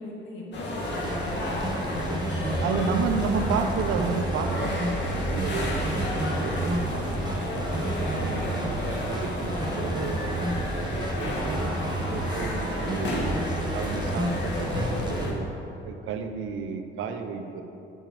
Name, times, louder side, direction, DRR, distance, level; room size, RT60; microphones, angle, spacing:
voice 1, 0.0-2.1, left 1 dB, 80° left, -3 dB, 2.7 m, -40 dB
sound 1, 0.5-15.3, left 1 dB, 65° left, 2.1 m, -32 dB
sound 2, 0.8-15.3, right 1 dB, 20° right, 1.3 m, -31 dB
voice 2, 2.6-7.7 8.2-11.7 12.1-13.4 13.7-15.5 15.8-17.6, right 6 dB, 85° right, 6 dB, 0.8 m, -32 dB
7.8 x 7.0 x 7.5 m, 2.8 s
cardioid pair, 90°, 20 cm